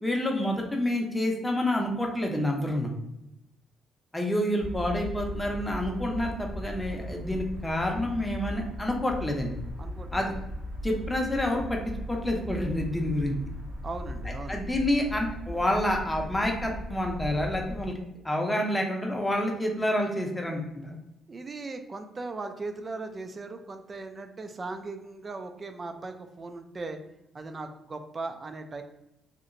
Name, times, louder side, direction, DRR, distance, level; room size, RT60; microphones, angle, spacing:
voice 1, 0.0-2.9 4.1-9.5 10.1-10.3 10.8-11.8 12.1-13.3 14.5-18.0 18.2-21.0, left 1 dB, 10° left, 1 dB, 0.6 m, -28 dB
sound 1, 4.6-17.9, equal, 75° right, 0.9 m, -38 dB
voice 2, 9.8-10.3 13.8-14.7 21.3-27.0 27.3-28.8, right 3 dB, 35° right, 7 dB, 0.3 m, -38 dB
2.8 x 2.1 x 2.5 m, 0.86 s
cardioid pair, 90°, 0 cm